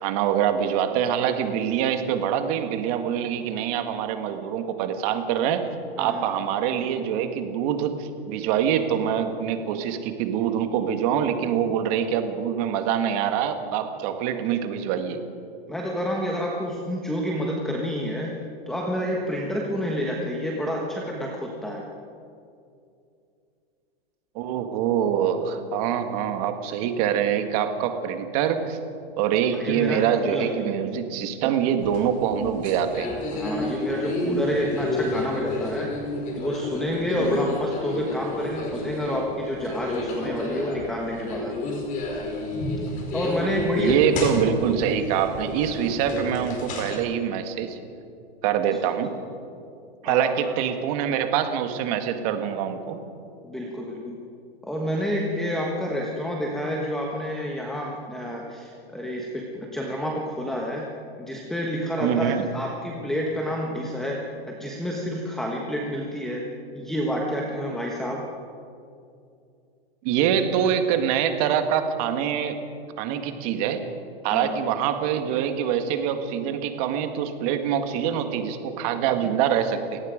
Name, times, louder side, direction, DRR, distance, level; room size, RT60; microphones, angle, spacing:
voice 1, 0.0-5.6 6.0-15.2 24.4-28.8 29.2-33.1 37.2-37.5 43.8-47.8 48.4-49.1 50.0-53.0 62.0-62.5 70.0-72.6 73.0-73.8 74.2-80.0, right 9 dB, 35° right, 7 dB, 1.9 m, -25 dB
voice 2, 15.7-18.4 18.7-21.8 29.5-30.5 33.3-36.0 36.4-41.6 43.1-44.0 48.8-48.9 50.0-50.6 53.4-54.2 54.6-60.9 61.2-66.5 66.7-68.3 70.6-70.7 74.3-74.6, equal, ahead, -1 dB, 1.3 m, -29 dB
sound 1, 31.8-47.0, left 2 dB, 25° left, 4.5 m, -30 dB
30.0 x 17.5 x 5.2 m, 2.5 s
supercardioid pair, 160°, 31 cm